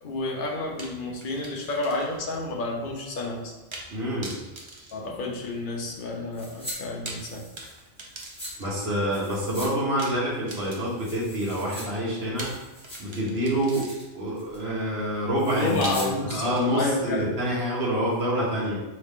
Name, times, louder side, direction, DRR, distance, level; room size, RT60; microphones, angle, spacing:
voice 1, 0.0-3.5 4.9-7.4 15.6-17.2, left 2 dB, 50° left, -1 dB, 0.8 m, -30 dB
sound 1, 0.8-2.3 2.6-2.7 3.7-3.9 4.2-5.8 6.8-8.9 10.0-11.2 12.4-14.3 15.8-17.2, right 2 dB, 35° right, 0.5 m, -42 dB
voice 2, 3.9-4.3 8.6-12.5 13.0-13.9 14.1-18.8, equal, 55° right, -5 dB, 1.4 m, -27 dB
sound 2, 6.3-6.8 7.1-8.5 9.1-9.7 10.0-10.1 10.6-11.8 12.2-13.2 13.5-14.0 14.3-14.7 15.3-16.1 16.4-16.5, equal, 5° left, 1.1 m, -41 dB
3.8 x 3.2 x 3.5 m, 1.1 s
omnidirectional pair, 1.3 m